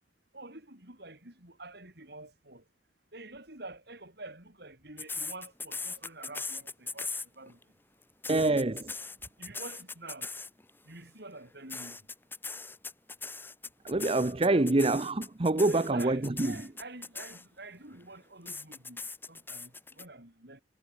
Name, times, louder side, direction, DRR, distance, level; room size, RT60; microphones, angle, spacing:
voice 1, 0.3-2.6 3.1-7.6 9.4-10.3 10.8-12.0 14.4-14.7 15.6-19.0 19.3-20.6, right 2 dB, 60° right, 7.9 m, -47 dB
sound 1, 5.0-7.6 8.0-10.7 11.7-17.7 18.5-20.0, left 4 dB, 10° left, 2.3 m, -40 dB
voice 2, 8.3-8.9 13.8-16.6, right 2 dB, 30° right, 0.7 m, -26 dB
head